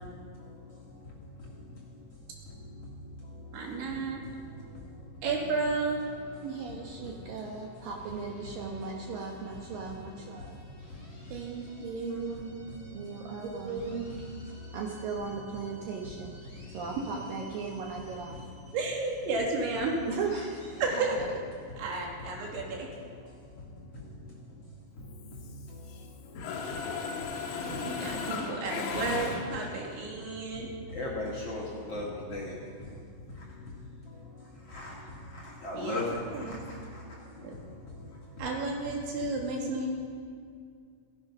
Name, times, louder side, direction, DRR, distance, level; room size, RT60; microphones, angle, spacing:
voice 1, 3.5-4.2 5.2-6.0 11.3-12.6 13.4-14.1 18.7-20.0 20.8-21.2 21.8-22.9 27.2-30.7 35.8-36.0 36.3-36.6 37.4-37.5 38.4-39.9, right 3 dB, 85° right, -1 dB, 4.7 m, -33 dB
voice 2, 6.4-10.6 12.1-12.4 12.9-14.1 14.7-16.4 16.7-18.4 20.1-21.2, right 5 dB, 70° right, 0 dB, 2.3 m, -37 dB
Mechanisms, 25.1-26.1 26.4-29.9, left 5 dB, 80° left, 3.7 m, -36 dB
voice 3, 30.9-31.6 31.9-32.5 34.7-34.9 35.6-36.2, left 2 dB, 45° left, -5 dB, 2.5 m, -34 dB
16.5 x 14.5 x 5.6 m, 2.2 s
omnidirectional pair, 5.1 m